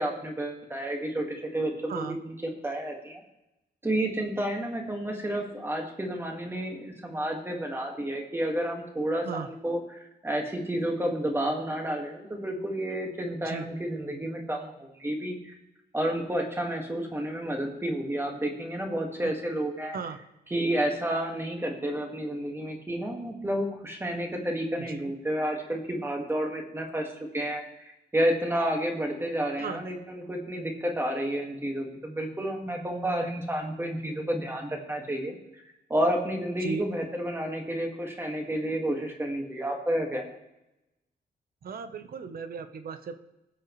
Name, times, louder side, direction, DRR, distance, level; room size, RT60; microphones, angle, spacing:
voice 1, 0.0-3.2 3.8-15.6 15.9-20.0 20.5-27.1 27.3-35.4 35.9-40.2, right 1 dB, 15° right, 1 dB, 1.7 m, -30 dB
voice 2, 24.8-25.1 29.6-29.8 36.6-36.9 41.6-43.2, right 5 dB, 60° right, 10 dB, 0.9 m, -36 dB
20.0 x 7.7 x 3.1 m, 0.94 s
wide cardioid pair, 175°, 18 cm